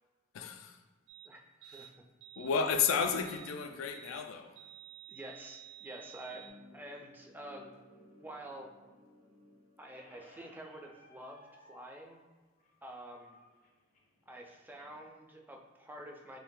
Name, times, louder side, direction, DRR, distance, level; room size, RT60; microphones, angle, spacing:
voice 1, 0.3-0.8 1.6-1.9 2.4-4.6, left 6 dB, 85° left, 0.4 m, -33 dB
sound 1, 1.1-1.3 1.6-1.9 2.2-2.9 3.3-3.5 3.9-4.2 4.6-6.5, right 12 dB, 70° right, 0.5 m, -52 dB
voice 2, 5.1-6.5 6.7-7.7 8.1-8.7 9.8-12.2 12.8-13.4 14.3-16.4, right 1 dB, 10° right, 0.3 m, -48 dB
sound 2, 6.3-11.4, left 1 dB, 85° right, 1.4 m, -60 dB
Squeak, 10.0-15.0, equal, 40° left, 0.6 m, -62 dB
3.2 x 2.6 x 3.6 m
head